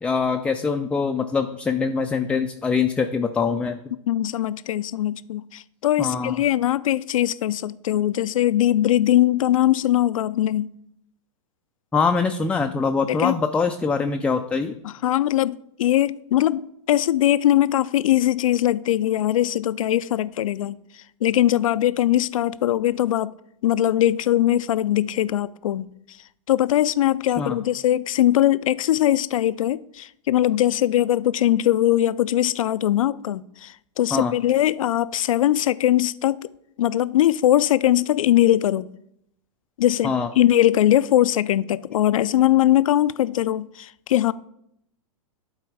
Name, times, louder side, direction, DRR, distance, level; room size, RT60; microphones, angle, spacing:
voice 1, 0.0-3.8 6.0-6.4 11.9-14.8 27.4-27.6 34.1-34.3 40.0-40.3, left 5 dB, 5° left, 0.3 m, -23 dB
voice 2, 4.1-10.7 13.1-13.3 14.8-20.8 21.2-23.3 23.6-25.9 26.5-36.4 36.8-38.9 39.8-44.3, left 13 dB, 75° left, 0.4 m, -21 dB
11.5 x 4.0 x 4.7 m
hypercardioid pair, 115°, 17 cm